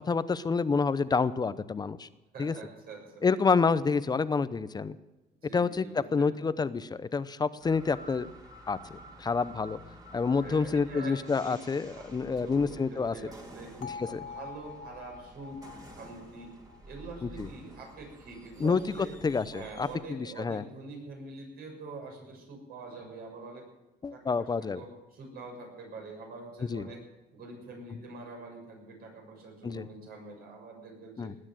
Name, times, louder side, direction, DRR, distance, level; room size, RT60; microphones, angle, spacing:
voice 1, 0.1-2.1 2.4-2.5 3.2-5.0 5.5-5.8 6.1-8.3 8.7-8.8 9.2-9.8 10.1-13.1 13.8-14.2 17.2-17.5 18.6-18.8 19.2-20.6 24.0-24.8 26.7-26.9 29.6-29.9 31.2-31.3, left 5 dB, 25° left, 15 dB, 0.7 m, -28 dB
voice 2, 2.3-3.3 5.4-6.3 10.3-11.6 12.0-13.7 14.1-16.5 16.8-19.1 19.5-23.6 24.1-27.0 27.3-31.3, right 3 dB, 65° right, 1 dB, 6.7 m, -45 dB
sound 1, 7.6-20.0, right 1 dB, 20° right, 2.8 m, -50 dB
Bell, 13.8-17.9, left 5 dB, 60° left, 2.0 m, -46 dB
19.0 x 9.8 x 7.6 m, 1.0 s
cardioid pair, 110°, 17 cm